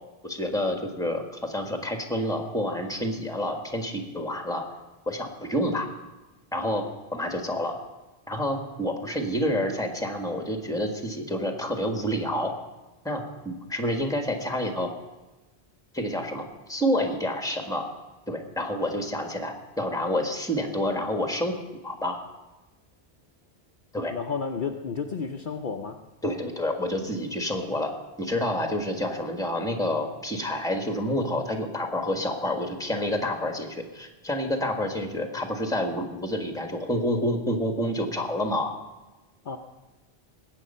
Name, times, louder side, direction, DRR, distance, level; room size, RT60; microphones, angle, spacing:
voice 1, 0.2-4.6 5.1-5.9 6.5-6.9 7.1-7.7 8.3-12.5 13.0-14.9 15.9-17.9 18.3-21.6 21.8-22.2 23.9-24.1 26.2-38.7, left 1 dB, 5° left, 4 dB, 1.4 m, -28 dB
voice 2, 24.1-26.0 39.4-39.6, left 5 dB, 55° left, 4 dB, 0.8 m, -31 dB
20.0 x 8.4 x 5.5 m, 1.1 s
omnidirectional pair, 1.1 m